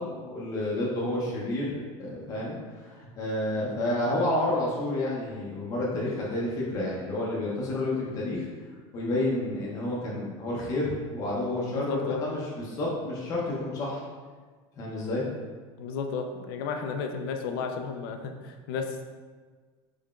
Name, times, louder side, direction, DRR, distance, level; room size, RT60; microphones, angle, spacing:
voice 1, 0.0-2.6 2.8-8.4 8.9-14.0 14.8-15.3, left 1 dB, 25° left, -5 dB, 0.6 m, -30 dB
voice 2, 11.7-12.2 15.8-19.0, left 5 dB, 75° left, 5 dB, 0.4 m, -33 dB
3.7 x 3.3 x 2.4 m, 1.5 s
cardioid pair, 165°, 12 cm